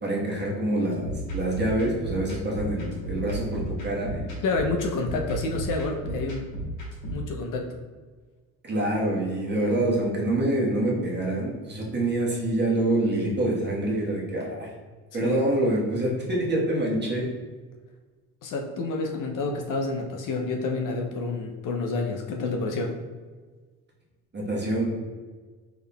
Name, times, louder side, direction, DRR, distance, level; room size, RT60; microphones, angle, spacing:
voice 1, 0.0-4.3 8.6-14.7 15.1-17.3 24.3-24.9, right 1 dB, 25° right, -4 dB, 1.2 m, -26 dB
Drum loop., 0.9-7.3, right 1 dB, 70° left, 1.4 m, -34 dB
voice 2, 4.4-6.4 7.0-7.7 15.2-15.4 18.4-23.0, left 3 dB, 55° left, 2 dB, 0.6 m, -29 dB
3.6 x 3.5 x 2.2 m, 1.4 s
supercardioid pair, 70°, 39 cm